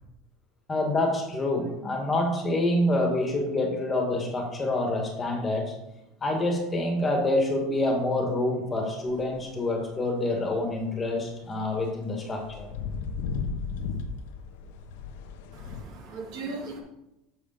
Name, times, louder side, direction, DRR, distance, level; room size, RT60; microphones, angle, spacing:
voice 1, 0.7-5.7 6.2-12.7, left 1 dB, 20° left, 1 dB, 2.0 m, -27 dB
sound 1, 9.1-9.3 9.7-9.8 10.4-10.7 11.5-15.8, left 5 dB, 80° left, 0.9 m, -35 dB
voice 2, 15.5-16.8, right 3 dB, 60° right, -1 dB, 2.5 m, -38 dB
6.9 x 5.1 x 6.8 m, 0.92 s
supercardioid pair, 130°, 0 cm